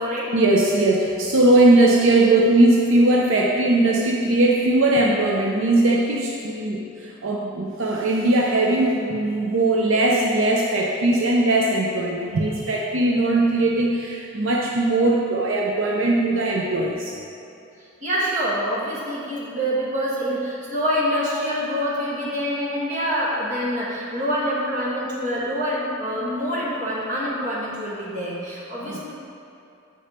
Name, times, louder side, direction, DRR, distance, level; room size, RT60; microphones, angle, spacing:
voice 1, 0.3-17.1 28.8-29.0, right 2 dB, 75° right, -2 dB, 0.6 m, -19 dB
voice 2, 18.0-29.1, equal, 40° right, -6 dB, 1.5 m, -26 dB
7.7 x 5.1 x 4.3 m, 2.7 s
head